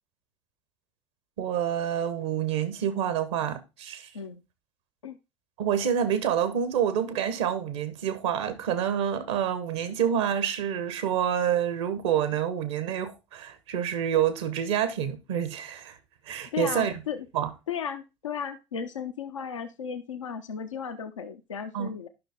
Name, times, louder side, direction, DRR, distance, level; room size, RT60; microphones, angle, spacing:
voice 1, 1.4-4.1 5.6-16.0 16.3-16.9 17.3-17.5 21.7-21.9, right 9 dB, 65° right, 1.2 m, -27 dB
voice 2, 16.5-17.3 17.7-22.1, left 7 dB, 80° left, 0.7 m, -35 dB
10.5 x 5.9 x 3.6 m
figure-of-eight pair, 60°, 16 cm